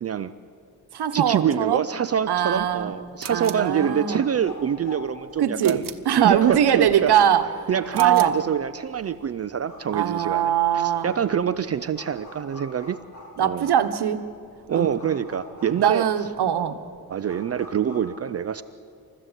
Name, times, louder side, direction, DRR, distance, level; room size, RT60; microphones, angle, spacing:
voice 1, 0.0-0.3 1.1-5.8 6.2-7.1 7.7-13.0 13.4-13.7 14.7-16.1 17.1-18.6, right 8 dB, 40° right, 12 dB, 0.4 m, -25 dB
voice 2, 0.9-1.9 2.3-3.0 3.3-4.3 5.4-7.5 7.9-8.4 9.9-11.1 13.4-14.2 14.7-14.9 15.7-16.8, right 10 dB, 85° right, 9 dB, 1.3 m, -21 dB
sound 1, 2.2-18.0, left 1 dB, 45° left, 5.7 m, -44 dB
sound 2, 3.2-3.7 5.6-6.1 7.9-8.4, right 9 dB, 55° right, 1.2 m, -39 dB
28.0 x 14.0 x 8.2 m, 2.4 s
wide cardioid pair, 175°, 39 cm